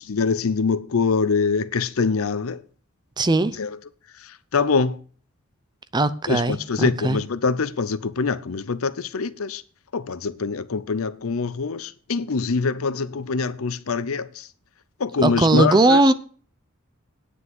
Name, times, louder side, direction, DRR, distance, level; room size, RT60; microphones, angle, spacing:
voice 1, 0.1-2.6 3.6-3.7 4.5-5.0 6.3-9.6 9.9-14.5 15.0-16.0, left 4 dB, 75° left, 0.6 m, -24 dB
voice 2, 3.2-3.6 5.9-7.2 15.2-16.1, right 2 dB, 20° right, 0.5 m, -19 dB
9.6 x 6.1 x 7.6 m
head